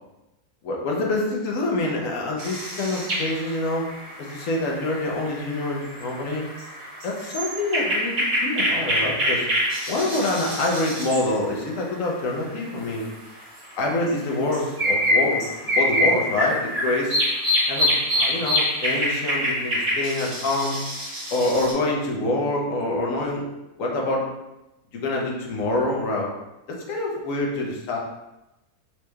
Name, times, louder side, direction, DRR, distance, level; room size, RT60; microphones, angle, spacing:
voice 1, 0.6-3.9 4.2-6.5 7.0-8.2 8.4-9.5 9.9-13.1 13.8-17.2 17.7-20.8 21.3-23.4 23.8-24.3 24.9-26.3 26.7-28.0, left 2 dB, 60° left, -1 dB, 1.0 m, -26 dB
sound 1, 2.4-12.1 12.5-12.6 12.9-21.7, equal, 35° right, 1.0 m, -26 dB
4.4 x 3.1 x 2.2 m, 0.96 s
omnidirectional pair, 1.7 m